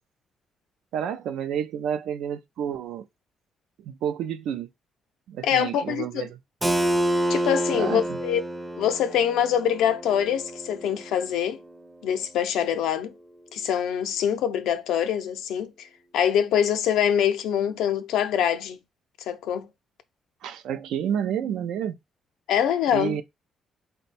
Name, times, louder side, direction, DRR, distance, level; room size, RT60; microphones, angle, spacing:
voice 1, 0.9-3.1 3.8-4.7 5.3-6.3 7.7-8.2 20.4-22.0 22.9-23.2, right 9 dB, 85° right, 0.4 m, -30 dB
voice 2, 5.4-6.3 7.3-8.4 8.8-11.6 12.0-13.1 13.5-15.9 16.1-18.8 19.3-19.7 22.5-23.2, left 9 dB, 85° left, 0.5 m, -24 dB
Keyboard (musical), 6.6-12.2, right 1 dB, 15° right, 0.5 m, -29 dB
4.4 x 2.2 x 4.0 m
cardioid pair, 90°, 0 cm